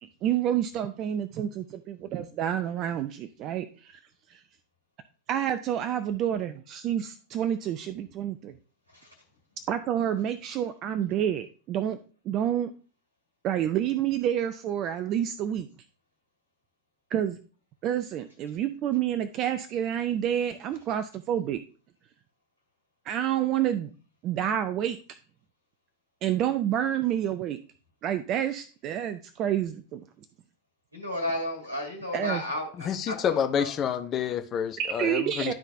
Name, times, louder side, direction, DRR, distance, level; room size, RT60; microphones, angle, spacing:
voice 1, 0.0-4.0 4.3-4.4 5.3-8.5 9.7-12.0 12.3-12.7 13.4-15.7 17.1-17.4 17.8-21.6 23.1-23.9 24.2-25.0 26.2-27.6 28.0-30.1 32.1-32.4 34.8-35.5, right 10 dB, 35° right, 0.4 m, -28 dB
voice 2, 30.9-33.7, left 1 dB, 90° left, 1.6 m, -33 dB
voice 3, 33.2-35.5, left 8 dB, 30° left, 0.7 m, -28 dB
11.5 x 4.0 x 2.6 m
figure-of-eight pair, 90°, 0 cm